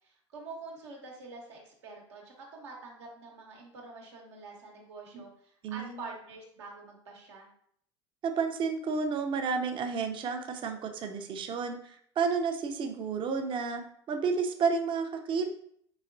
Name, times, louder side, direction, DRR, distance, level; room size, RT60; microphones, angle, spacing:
voice 1, 0.0-7.5, right 3 dB, 75° right, -1 dB, 0.9 m, -46 dB
voice 2, 5.6-6.0 8.2-15.5, right 5 dB, 35° right, 5 dB, 0.5 m, -31 dB
4.0 x 2.8 x 2.6 m, 0.66 s
hypercardioid pair, 80°, 15 cm